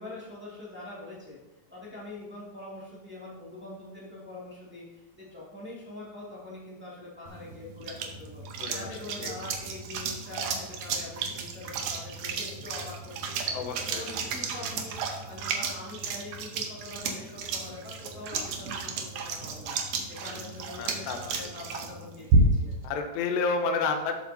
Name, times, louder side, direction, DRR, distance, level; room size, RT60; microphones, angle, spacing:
voice 1, 0.0-1.4 1.7-8.4 8.7-13.6 13.9-19.7 20.1-22.7, left 2 dB, 15° right, -7 dB, 0.3 m, -44 dB
sound 1, 7.3-22.8, right 4 dB, 70° right, 1.9 m, -32 dB
voice 2, 13.5-14.4 20.2-20.5 20.8-21.4 22.8-24.2, left 4 dB, 85° left, 4 dB, 3.2 m, -31 dB
12.5 x 7.5 x 2.8 m, 1.0 s
omnidirectional pair, 4.7 m